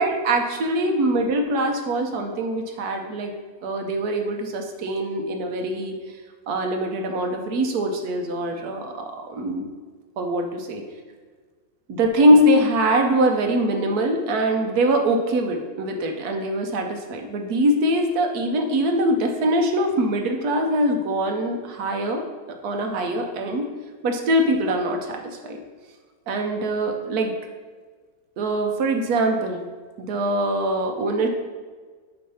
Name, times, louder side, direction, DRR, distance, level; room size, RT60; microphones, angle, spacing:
voice 1, 0.0-3.3 3.6-5.9 6.5-9.7 10.2-10.8 11.9-22.3 22.6-23.7 24.0-25.6 26.3-27.3 28.4-29.6 30.0-31.3, right 1 dB, 90° right, 3 dB, 1.3 m, -23 dB
7.8 x 3.2 x 5.5 m, 1.5 s
omnidirectional pair, 1.6 m